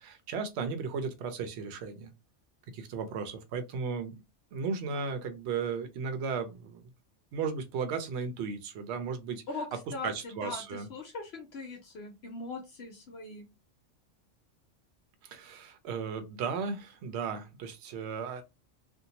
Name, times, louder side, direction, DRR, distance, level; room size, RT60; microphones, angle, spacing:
voice 1, 0.0-2.1 2.7-4.2 4.5-6.8 7.3-9.4 10.0-10.9 15.2-18.4, right 5 dB, 65° right, 0.8 m, -35 dB
voice 2, 9.5-13.5, left 3 dB, 60° left, 0.9 m, -41 dB
2.6 x 2.2 x 2.8 m
omnidirectional pair, 1.3 m